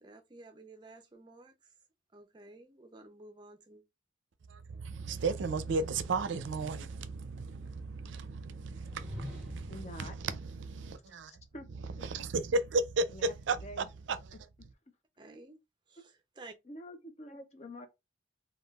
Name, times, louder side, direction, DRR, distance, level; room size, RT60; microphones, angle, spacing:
voice 1, 0.0-1.7 2.1-3.8 15.2-15.6 15.9-16.5, right 2 dB, 25° right, 0.5 m, -53 dB
voice 2, 4.5-11.3 12.0-14.2, right 3 dB, 85° right, 0.4 m, -34 dB
sound 1, 8.7-9.9, left 1 dB, 5° right, 1.3 m, -44 dB
voice 3, 9.7-10.2 11.3-11.7 13.1-13.2 13.6-13.9 16.7-17.9, left 1 dB, 35° left, 0.5 m, -46 dB
3.5 x 2.3 x 2.3 m
head